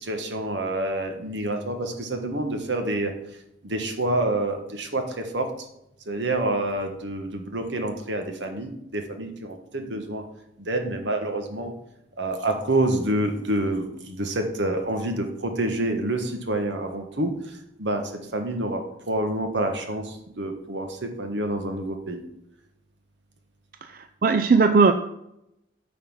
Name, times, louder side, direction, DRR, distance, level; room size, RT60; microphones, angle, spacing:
voice 1, 0.0-3.1 3.6-5.5 6.1-10.2 10.6-11.7 12.2-17.3 17.8-18.0 18.3-18.8 19.1-22.2, right 1 dB, 80° right, 5 dB, 1.5 m, -27 dB
voice 2, 23.9-24.9, right 4 dB, 50° right, 8 dB, 0.4 m, -18 dB
9.4 x 4.3 x 7.2 m, 0.81 s
head